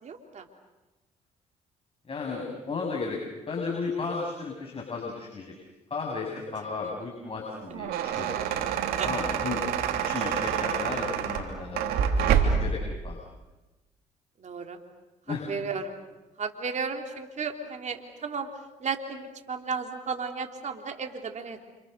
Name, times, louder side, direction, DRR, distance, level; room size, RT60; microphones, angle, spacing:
voice 1, 0.0-0.4 9.0-9.1 14.4-14.8 15.5-15.9 16.4-18.5 18.8-21.6, right 5 dB, 50° right, 4 dB, 3.4 m, -34 dB
voice 2, 2.1-3.2 3.5-5.5 5.9-8.3 9.0-9.6 10.0-11.9 12.2-12.3 12.6-12.8 13.0-13.2 15.3-15.5, left 4 dB, 40° left, 0 dB, 7.1 m, -34 dB
sound 1, 7.5-12.8, right 7 dB, 85° right, 3.1 m, -27 dB
30.0 x 28.0 x 6.8 m, 1.1 s
supercardioid pair, 60°, 15 cm